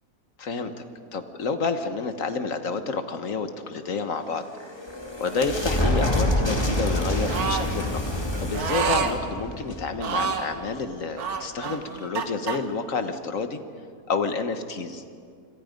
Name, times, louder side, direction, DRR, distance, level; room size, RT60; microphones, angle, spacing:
voice 1, 0.4-0.7 1.1-4.4 5.2-8.0 8.4-13.6 14.1-15.0, left 4 dB, 60° left, 8 dB, 1.6 m, -29 dB
sound 1, 4.3-10.7, left 1 dB, 15° left, 2.6 m, -27 dB
sound 2, 7.3-7.7 8.5-9.1 10.0-10.5 11.2-12.6, right 6 dB, 80° right, 1.8 m, -27 dB
26.5 x 25.5 x 5.2 m, 2.3 s
omnidirectional pair, 1.6 m